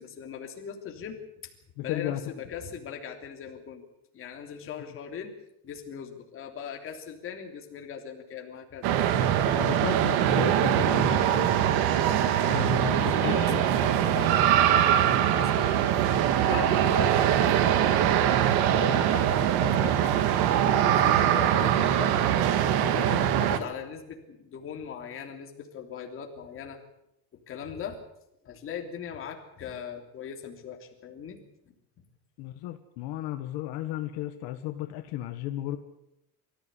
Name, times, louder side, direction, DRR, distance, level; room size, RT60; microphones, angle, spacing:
voice 1, 0.0-1.5 1.8-3.8 4.1-5.4 5.6-8.9 12.4-15.7 16.4-18.2 18.6-22.1 22.8-26.8 27.5-28.0 28.4-31.4, left 7 dB, 35° left, 2 dB, 3.2 m, -39 dB
voice 2, 1.8-2.2 9.5-11.6 12.5-13.6 32.4-35.8, left 14 dB, 75° left, 7 dB, 1.6 m, -34 dB
sound 1, 8.8-23.6, right 10 dB, 80° right, 1.9 m, -23 dB
24.5 x 15.0 x 8.4 m, 0.83 s
cardioid pair, 180°, 38 cm